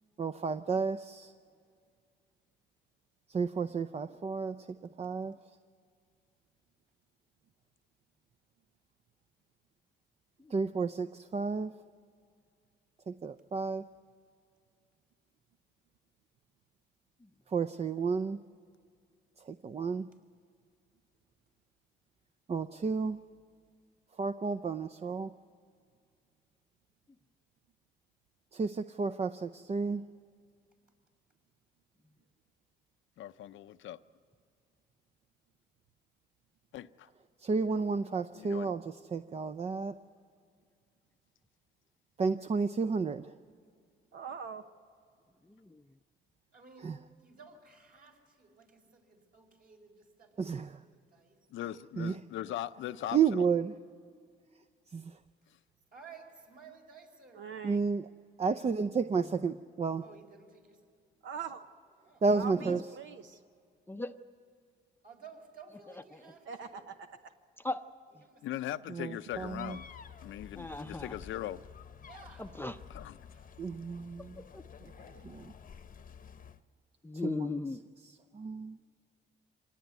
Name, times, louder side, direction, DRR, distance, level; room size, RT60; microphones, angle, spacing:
voice 1, 0.2-1.3 3.3-4.6 5.0-5.3 10.5-11.7 13.1-13.9 17.5-18.4 19.5-20.0 22.5-23.2 24.2-25.3 28.5-30.0 37.4-39.9 42.2-43.3 46.8-47.0 50.4-50.8 52.0-52.2 53.1-53.7 54.9-55.0 57.6-58.1 58.4-60.0 62.2-62.8 68.9-69.8 73.6-74.4 75.2-75.5 77.2-77.4 78.3-78.8, right 5 dB, 30° right, 12 dB, 0.6 m, -31 dB
voice 2, 33.2-34.0 36.7-37.1 38.3-38.7 51.5-53.5 68.4-69.8 70.2-71.6 72.9-73.1, left 12 dB, 75° left, 11 dB, 0.6 m, -39 dB
voice 3, 44.1-44.6 57.3-57.8 61.2-61.6 62.3-63.4 66.5-67.3 74.8-75.3, right 6 dB, 70° right, 8 dB, 0.9 m, -43 dB
voice 4, 45.4-45.8 59.2-59.6 62.5-62.8 63.9-64.2 67.6-67.9 68.1-68.2 70.6-71.2 72.4-72.8 74.4-74.6 77.0-77.8, left 3 dB, 10° left, 7 dB, 0.7 m, -38 dB
voice 5, 46.5-51.5 55.9-57.8 60.0-60.9 61.3-61.5 62.0-62.2 65.0-66.9 68.2-69.1 71.2-71.3 72.0-72.5 73.3-73.5, right 5 dB, 50° right, 2 dB, 4.8 m, -55 dB
sound 1, 69.3-76.6, left 7 dB, 40° left, 0.9 m, -51 dB
25.0 x 18.5 x 9.5 m, 2.2 s
cardioid pair, 90°, 20 cm